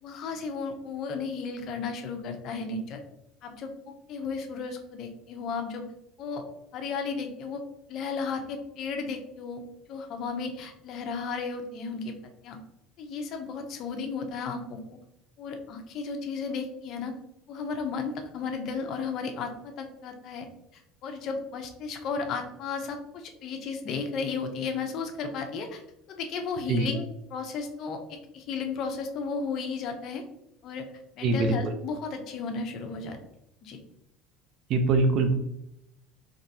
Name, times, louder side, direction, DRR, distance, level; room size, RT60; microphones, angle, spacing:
voice 1, 0.0-3.0 3.4-5.9 6.2-6.4 6.7-7.6 7.9-9.6 9.9-12.1 12.4-12.6 13.0-15.0 15.4-17.1 17.5-20.5 20.7-25.8 26.1-30.2 30.6-30.9 31.2-33.2 33.6-33.8, left 5 dB, 50° left, 4 dB, 0.7 m, -34 dB
voice 2, 31.2-31.7 34.7-35.3, right 3 dB, 55° right, 7 dB, 0.6 m, -23 dB
3.9 x 3.0 x 2.7 m, 0.81 s
cardioid pair, 125°, 0 cm